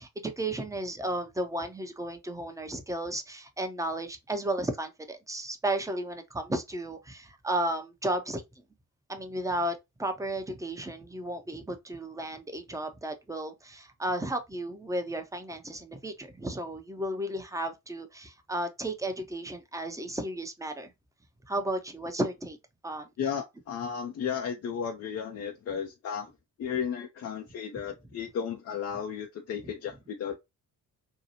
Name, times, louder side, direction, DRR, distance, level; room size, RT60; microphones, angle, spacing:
voice 1, 0.0-8.4 9.1-20.9 21.5-22.6 22.8-23.1 29.6-29.7, right 1 dB, 5° right, 0.6 m, -33 dB
voice 2, 23.2-26.3 26.6-30.4, left 7 dB, 35° left, 0.5 m, -34 dB
2.8 x 2.3 x 2.8 m
figure-of-eight pair, 40°, 46 cm